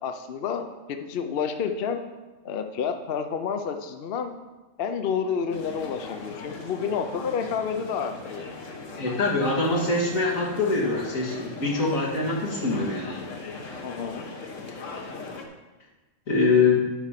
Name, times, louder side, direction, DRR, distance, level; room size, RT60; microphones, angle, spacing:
voice 1, 0.0-2.0 2.4-4.3 4.8-8.5 13.8-14.3, left 6 dB, 55° left, 7 dB, 0.8 m, -29 dB
sound 1, 5.5-15.5, left 3 dB, 70° left, 1.5 m, -39 dB
voice 2, 9.0-13.2 16.3-16.9, left 3 dB, 85° left, -3 dB, 2.3 m, -24 dB
10.5 x 4.9 x 5.8 m, 1.2 s
omnidirectional pair, 1.4 m